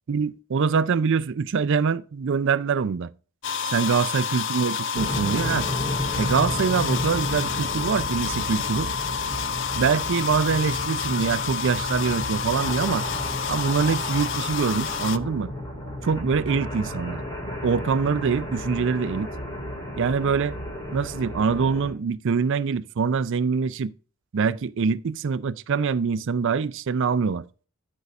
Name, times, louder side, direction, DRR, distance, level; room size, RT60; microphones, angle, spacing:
voice 1, 0.1-3.1 3.6-5.7 6.2-8.9 9.7-13.1 13.5-15.5 16.0-17.2 17.6-19.3 20.0-20.6 20.9-23.9 24.3-27.4, right 5 dB, 55° right, 0.4 m, -24 dB
sound 1, 3.4-15.2, left 6 dB, 55° left, 0.4 m, -29 dB
sound 2, 5.0-21.9, left 1 dB, 15° left, 2.1 m, -33 dB
12.5 x 5.3 x 2.4 m
head